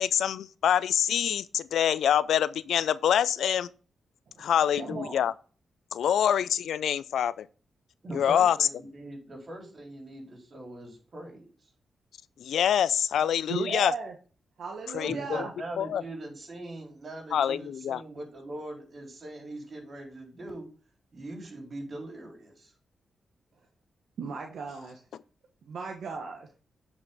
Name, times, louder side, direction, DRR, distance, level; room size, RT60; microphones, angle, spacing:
voice 1, 0.0-3.7 4.4-5.3 5.9-7.5 8.1-8.7 12.4-13.9 14.9-15.4 15.8-16.0 17.3-18.0, left 9 dB, 80° left, 0.4 m, -25 dB
voice 2, 4.3-5.3 13.5-14.1 14.6-15.5 24.2-25.0 25.6-26.5, right 5 dB, 75° right, 1.2 m, -36 dB
voice 3, 8.0-11.5 15.1-20.7 21.1-22.7, right 1 dB, 55° right, 4.0 m, -41 dB
8.9 x 5.5 x 3.8 m
supercardioid pair, 50°, 0 cm